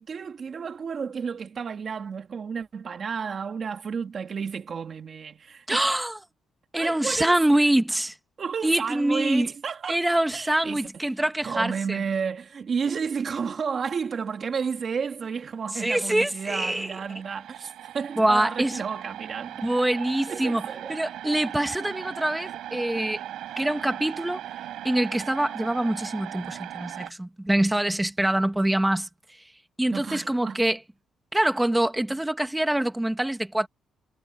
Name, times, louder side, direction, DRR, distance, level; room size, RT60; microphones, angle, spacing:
voice 1, 0.0-5.9 6.8-7.3 8.4-10.0 10.3-10.8 11.4-19.6 20.3-21.0 29.9-30.6, right 6 dB, 40° right, 2.4 m, -32 dB
voice 2, 5.7-6.2 6.7-8.1 8.6-9.5 9.9-12.0 15.8-16.9 18.2-18.8 19.6-20.6 20.9-23.2 23.6-24.4 24.8-29.1 29.8-30.8 31.3-33.7, right 1 dB, 5° right, 1.9 m, -25 dB
sound 1, 15.8-15.9 16.1-27.1, right 12 dB, 80° right, 5.4 m, -39 dB
cardioid pair, 135°, 0 cm